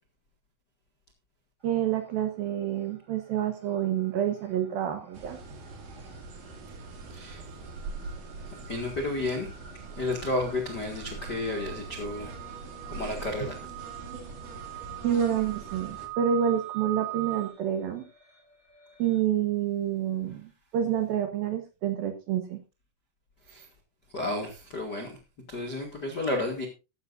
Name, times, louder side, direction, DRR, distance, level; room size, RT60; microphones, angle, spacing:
sound 1, 1.6-2.3 2.6-19.2, right 16 dB, 5° right, 3.4 m, -44 dB
voice 1, 1.6-5.4 15.0-18.0 19.0-22.6, right 9 dB, 70° right, 6 dB, 2.4 m, -28 dB
sound 2, 5.1-16.1, right 3 dB, 55° right, 3.6 m, -42 dB
voice 2, 7.1-7.4 8.7-9.5 9.9-12.3 12.9-13.6 23.5-23.7 24.1-25.2 25.5-26.6, left 2 dB, 75° left, 2 dB, 0.9 m, -32 dB
14.5 x 13.5 x 2.6 m, 0.28 s
omnidirectional pair, 5.6 m